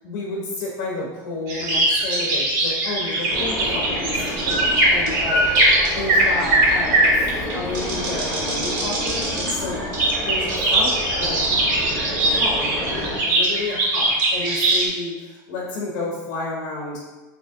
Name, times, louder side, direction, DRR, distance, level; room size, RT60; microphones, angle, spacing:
voice 1, 0.0-7.2 7.5-9.8 10.3-11.8 12.2-17.0, left 2 dB, 75° left, -3 dB, 0.9 m, -31 dB
sound 1, 1.5-14.9, right 1 dB, 80° right, 1.4 m, -21 dB
sound 2, 3.3-13.2, left 1 dB, 25° left, 0.8 m, -30 dB
2.8 x 2.8 x 3.6 m, 1.2 s
supercardioid pair, 160°, 10 cm